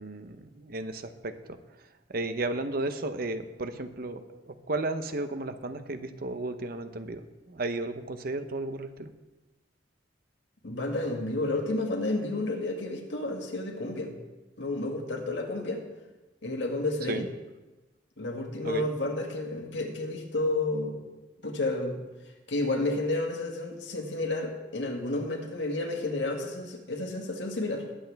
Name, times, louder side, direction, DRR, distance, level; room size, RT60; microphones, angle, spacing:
voice 1, 0.0-1.6 2.1-7.2 7.5-9.1 17.1-17.3 18.6-18.9, right 2 dB, 55° right, 9 dB, 0.8 m, -34 dB
voice 2, 10.6-14.1 14.6-15.8 16.4-17.2 18.2-21.0 21.4-22.0 22.5-27.8, left 2 dB, 80° left, 2 dB, 1.8 m, -31 dB
20.5 x 8.0 x 3.5 m, 1.1 s
head